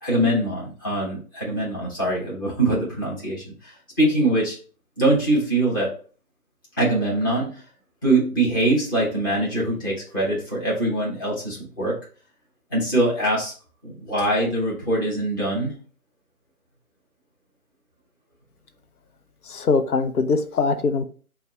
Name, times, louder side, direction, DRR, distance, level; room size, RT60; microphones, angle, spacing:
voice 1, 0.0-3.4 4.0-4.5 5.0-5.9 6.8-7.5 8.0-11.9 12.7-13.5 13.8-15.7, right 1 dB, 15° left, -6 dB, 0.8 m, -23 dB
voice 2, 19.5-21.0, left 4 dB, 85° left, 8 dB, 0.7 m, -22 dB
4.3 x 2.3 x 4.0 m, 0.41 s
figure-of-eight pair, 155°, 43 cm